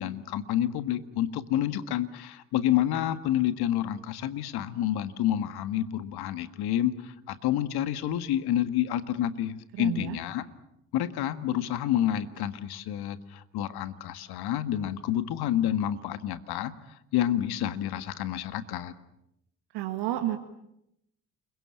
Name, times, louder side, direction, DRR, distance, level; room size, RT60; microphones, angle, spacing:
voice 1, 0.0-10.5 10.9-16.7 17.1-18.9, left 11 dB, 65° left, 12 dB, 1.8 m, -29 dB
voice 2, 9.8-10.2 19.7-20.4, right 13 dB, 70° right, 6 dB, 1.9 m, -30 dB
29.0 x 22.5 x 8.8 m, 0.82 s
hypercardioid pair, 50°, 41 cm